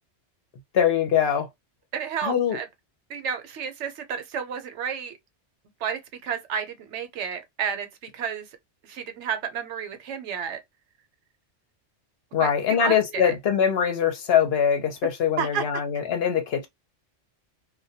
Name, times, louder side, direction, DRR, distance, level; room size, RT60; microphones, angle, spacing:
voice 1, 0.7-1.5 2.2-2.6 12.3-16.7, left 8 dB, 65° left, 0.8 m, -23 dB
voice 2, 1.9-2.7 3.1-5.1 5.8-8.5 8.8-10.6 12.4-13.4 15.4-15.6, right 7 dB, 75° right, 0.9 m, -31 dB
2.2 x 2.1 x 2.7 m
omnidirectional pair, 1.2 m